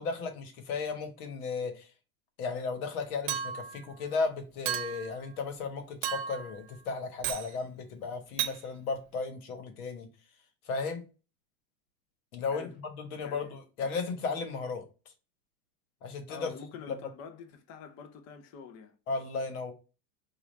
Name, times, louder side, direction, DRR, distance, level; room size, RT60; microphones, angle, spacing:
voice 1, 0.0-1.9 2.4-10.1 10.7-11.1 12.3-14.8 16.0-16.5 16.9-17.0 19.1-19.7, left 4 dB, 85° left, 1.2 m, -35 dB
Chink clink, 3.3-3.8 4.6-5.1 6.0-6.5 7.2-7.5 8.4-8.6, right 9 dB, 70° right, 0.8 m, -33 dB
voice 2, 16.3-19.0, left 6 dB, 40° left, 0.6 m, -46 dB
4.9 x 2.4 x 3.1 m
supercardioid pair, 140°, 42 cm